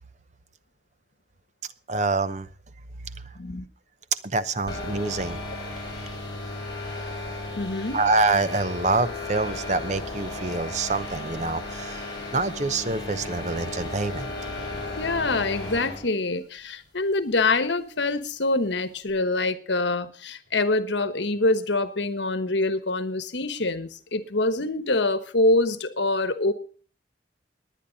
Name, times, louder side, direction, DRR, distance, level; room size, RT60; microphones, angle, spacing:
voice 1, 1.9-2.5 3.1-3.3 4.2-5.4 7.9-14.5, right 3 dB, 40° right, 14 dB, 0.7 m, -26 dB
sound 1, 4.7-16.0, left 2 dB, 25° left, 5.2 m, -35 dB
voice 2, 7.6-8.0 15.0-26.5, left 2 dB, 75° left, 12 dB, 1.2 m, -25 dB
19.0 x 10.0 x 4.1 m, 0.41 s
head